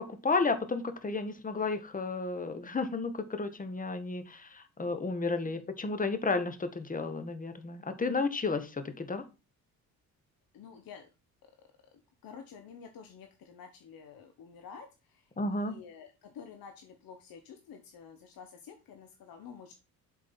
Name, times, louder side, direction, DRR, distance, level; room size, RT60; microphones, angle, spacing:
voice 1, 0.0-9.3 15.4-15.8, left 3 dB, 15° left, 11 dB, 1.2 m, -32 dB
voice 2, 10.5-11.1 11.9-19.7, left 6 dB, 45° left, 6 dB, 1.2 m, -50 dB
7.5 x 5.8 x 4.4 m, 0.30 s
figure-of-eight pair, 45°, 48 cm